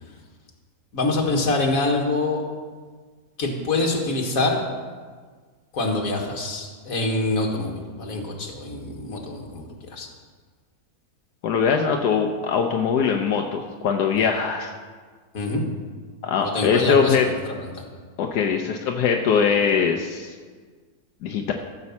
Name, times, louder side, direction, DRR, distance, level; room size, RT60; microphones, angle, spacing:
voice 1, 0.9-2.4 3.4-4.6 5.7-10.1 14.2-14.3 15.3-15.6 16.4-17.7, left 2 dB, 60° left, 1 dB, 2.0 m, -25 dB
voice 2, 11.4-14.7 16.2-17.3 18.2-20.3 21.2-21.5, left 6 dB, 85° left, 3 dB, 1.3 m, -22 dB
14.0 x 5.4 x 7.1 m, 1.5 s
omnidirectional pair, 1.7 m